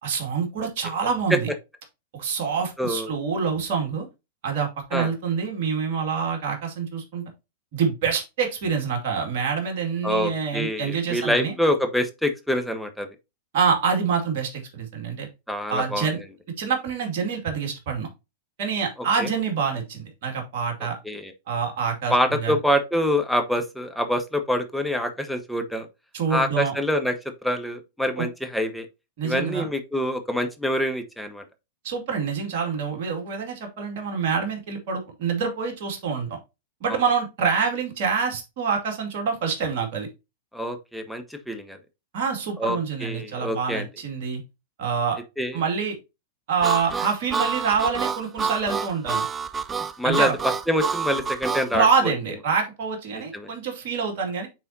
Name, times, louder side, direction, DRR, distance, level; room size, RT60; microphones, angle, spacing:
voice 1, 0.0-1.5 2.1-4.1 4.4-7.2 7.7-11.5 13.5-15.3 15.7-16.2 16.6-18.1 18.6-21.0 21.5-22.5 26.1-26.7 28.2-28.3 29.2-29.7 31.8-36.4 36.8-40.1 42.1-44.4 44.8-45.2 45.5-46.0 46.5-49.2 50.0-50.4 51.7-54.5, right 6 dB, 55° right, 2.4 m, -26 dB
voice 2, 10.0-13.1 15.5-16.1 19.2-19.3 21.0-21.3 22.1-25.9 26.3-27.2 27.4-28.9 29.2-31.4 36.9-37.0 40.5-41.8 42.6-43.9 45.4-45.6 50.0-50.3 50.7-51.8 53.1-53.5, equal, ahead, 1.3 m, -25 dB
Harmonica, 46.6-51.7, right 5 dB, 20° right, 0.6 m, -27 dB
9.2 x 4.2 x 2.8 m
hypercardioid pair, 100°, 0 cm